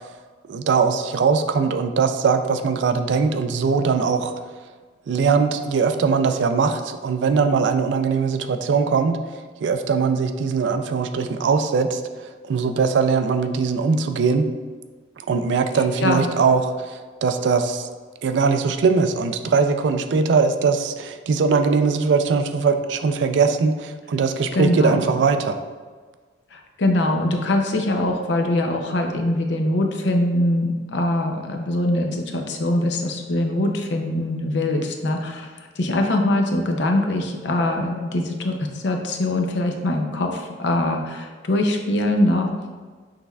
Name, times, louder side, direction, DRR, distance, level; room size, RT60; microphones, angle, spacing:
voice 1, 0.5-4.3 5.1-9.2 9.6-12.0 12.5-14.5 15.3-17.9 18.2-25.6, right 5 dB, 70° right, 8 dB, 0.3 m, -21 dB
voice 2, 24.5-25.1 26.5-42.5, left 1 dB, 65° left, 3 dB, 0.5 m, -23 dB
6.3 x 3.3 x 2.3 m, 1.5 s
head